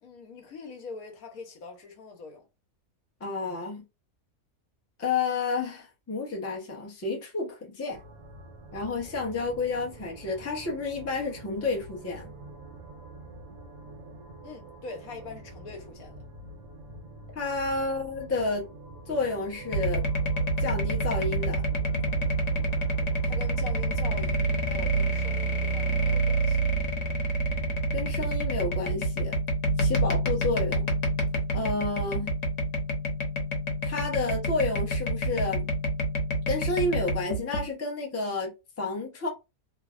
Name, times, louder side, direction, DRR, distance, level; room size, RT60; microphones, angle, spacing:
voice 1, 0.0-2.5 14.4-16.2 23.2-26.6, left 4 dB, 85° left, 1.2 m, -43 dB
voice 2, 3.2-3.8 5.0-8.0 8.7-12.3 17.3-18.7 19.1-20.0 20.6-21.7 27.9-29.4 29.8-30.9 31.5-32.3 33.8-35.7 36.5-38.5 38.8-39.3, left 3 dB, 20° left, 0.4 m, -30 dB
sound 1, 7.9-26.2, right 1 dB, 85° right, 1.3 m, -46 dB
sound 2, 19.7-37.7, right 2 dB, 65° left, 1.1 m, -27 dB
3.0 x 2.0 x 2.4 m
omnidirectional pair, 1.5 m